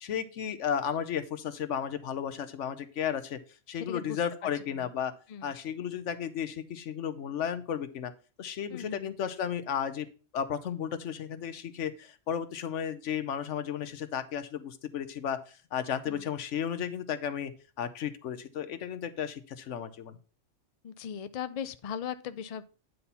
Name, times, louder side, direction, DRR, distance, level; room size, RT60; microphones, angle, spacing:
voice 1, 0.0-3.4 3.7-5.1 5.4-8.1 8.4-10.1 10.3-17.5 17.8-20.2, left 8 dB, 70° left, 11 dB, 1.1 m, -34 dB
voice 2, 3.7-4.2 4.7-4.9 5.3-5.5 8.7-9.2 16.1-16.3 20.8-22.6, left 8 dB, 55° left, 12 dB, 0.4 m, -38 dB
9.4 x 4.2 x 5.5 m, 0.36 s
omnidirectional pair, 1.3 m